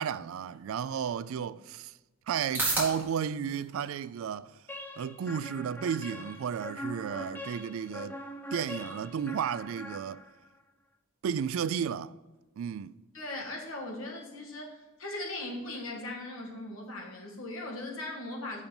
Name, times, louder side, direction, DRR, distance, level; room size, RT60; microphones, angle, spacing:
voice 1, 0.0-1.9 2.3-4.5 5.0-8.2 8.5-10.2 11.2-12.1 12.6-12.9, right 7 dB, 70° right, 0.3 m, -33 dB
sound 1, 1.1-18.0, right 2 dB, 10° right, 2.6 m, -43 dB
sound 2, 4.7-10.6, left 1 dB, 10° left, 0.5 m, -42 dB
voice 2, 13.1-18.6, left 2 dB, 70° left, 1.8 m, -39 dB
5.8 x 5.5 x 6.9 m
head